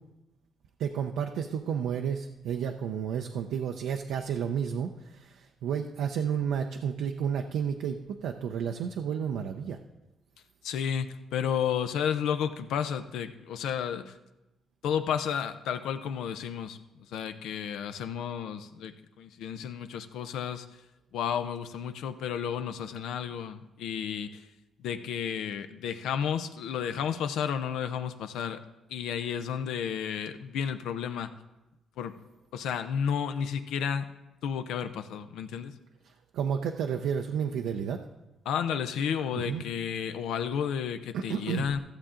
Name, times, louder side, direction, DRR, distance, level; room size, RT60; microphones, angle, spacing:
voice 1, 0.8-9.8 36.3-38.0 39.3-39.6 41.1-41.7, right 7 dB, 85° right, 4 dB, 0.5 m, -31 dB
voice 2, 10.6-14.1 14.8-20.7 21.1-24.4 24.8-28.6 28.9-31.3 32.0-32.2 32.5-34.1 34.4-35.8 38.5-41.8, left 8 dB, 85° left, 10 dB, 0.6 m, -32 dB
14.5 x 7.2 x 3.7 m, 1.0 s
cardioid pair, 90°, 0 cm